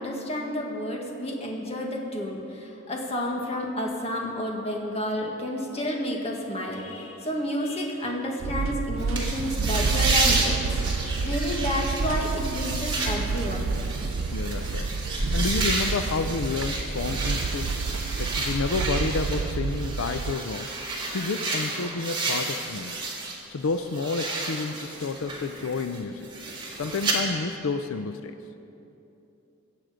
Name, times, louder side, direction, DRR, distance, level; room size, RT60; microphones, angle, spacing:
voice 1, 0.0-13.7, left 1 dB, 30° left, 0 dB, 1.7 m, -30 dB
sound 1, 8.4-20.3, right 5 dB, 70° right, 0.4 m, -30 dB
Walk footsteps, 8.9-18.6, right 1 dB, 50° right, 1.0 m, -35 dB
sound 2, 9.1-23.4 23.7-27.1, right 3 dB, 25° right, 2.0 m, -31 dB
voice 2, 14.3-15.0 15.3-17.7 18.2-20.7 21.1-23.0 23.5-26.3 26.8-28.4, left 4 dB, 85° left, 9 dB, 0.5 m, -30 dB
23.0 x 7.8 x 5.0 m, 2.9 s
head